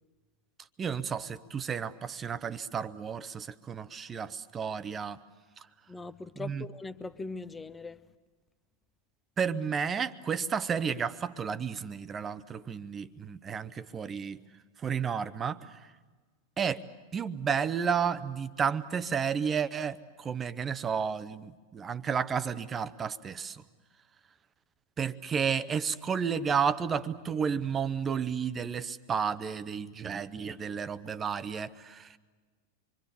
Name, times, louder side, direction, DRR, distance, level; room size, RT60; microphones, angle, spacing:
voice 1, 0.8-5.2 5.6-5.7 6.4-6.6 9.4-14.4 14.8-15.9 16.6-16.9 17.1-23.6 25.0-32.2, right 6 dB, 20° right, 0.8 m, -32 dB
voice 2, 5.9-8.0, left 3 dB, 10° left, 0.8 m, -40 dB
26.5 x 24.0 x 6.9 m
figure-of-eight pair, 90°, 0 cm